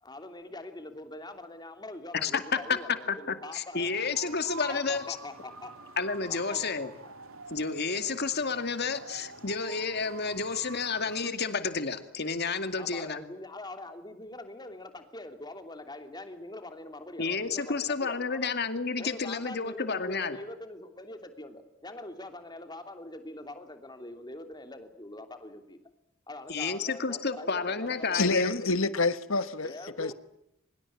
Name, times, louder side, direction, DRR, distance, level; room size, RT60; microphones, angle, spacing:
voice 1, 0.0-3.9 4.7-5.7 6.3-6.7 12.8-18.5 19.0-25.8 26.3-28.5 29.6-30.1, left 2 dB, 20° left, 3.1 m, -43 dB
voice 2, 2.2-5.0 6.0-6.9 7.5-13.2 17.2-20.4 26.5-28.6, left 4 dB, 50° left, 2.3 m, -31 dB
sound 1, 3.7-11.3, right 4 dB, 85° right, 2.8 m, -46 dB
voice 3, 28.1-29.7 30.0-30.1, left 3 dB, 75° left, 1.4 m, -27 dB
24.5 x 22.0 x 8.6 m
head